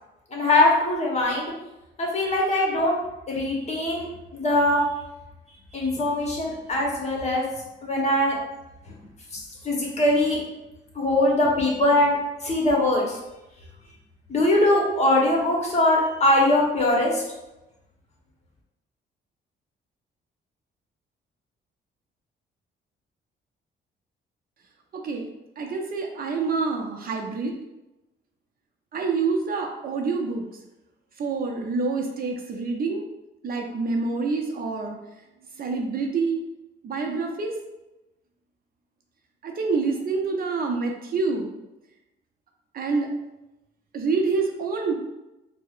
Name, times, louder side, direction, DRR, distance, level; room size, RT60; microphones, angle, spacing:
voice 1, 0.3-1.5 2.0-3.0 3.3-4.1 4.3-4.8 5.7-7.5 7.8-8.4 9.6-10.4 10.9-12.2 12.4-13.2 14.3-17.2, left 1 dB, 35° left, -2 dB, 1.0 m, -21 dB
voice 2, 24.9-25.3 25.6-27.6 28.9-30.4 31.2-33.0 33.4-35.0 35.6-36.4 36.8-37.5 39.4-41.5 42.7-43.1 43.9-44.9, right 4 dB, 50° right, 2 dB, 0.5 m, -27 dB
4.6 x 2.0 x 2.4 m, 0.97 s
cardioid pair, 90°, 20 cm